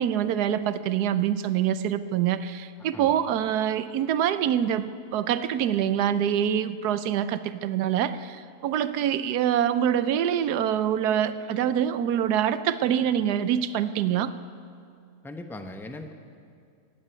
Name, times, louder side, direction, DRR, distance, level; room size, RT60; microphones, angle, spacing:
voice 1, 0.0-14.3, right 9 dB, 90° right, 14 dB, 1.2 m, -25 dB
voice 2, 15.2-16.1, left 2 dB, ahead, 6 dB, 0.5 m, -39 dB
15.0 x 9.0 x 9.5 m, 2.3 s
omnidirectional pair, 1.7 m